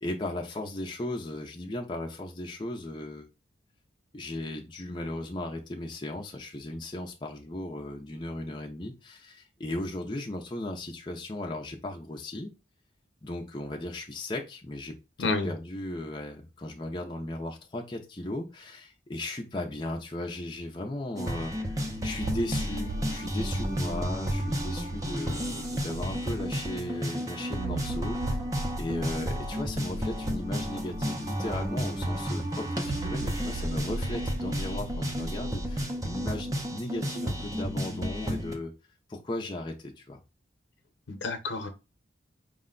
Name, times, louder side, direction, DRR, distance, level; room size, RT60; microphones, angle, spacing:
voice 1, 0.0-3.3 4.1-12.5 13.2-28.4 28.8-38.7 39.1-40.2, left 1 dB, 25° left, 1 dB, 0.6 m, -36 dB
voice 2, 15.2-15.5 41.1-41.7, left 3 dB, 75° left, 6 dB, 0.9 m, -29 dB
sound 1, 21.2-38.5, equal, 15° right, 0.6 m, -32 dB
sound 2, 22.2-26.7 27.5-32.2 32.8-35.9, right 1 dB, 60° right, 0.4 m, -38 dB
5.0 x 2.2 x 3.7 m, 0.27 s
head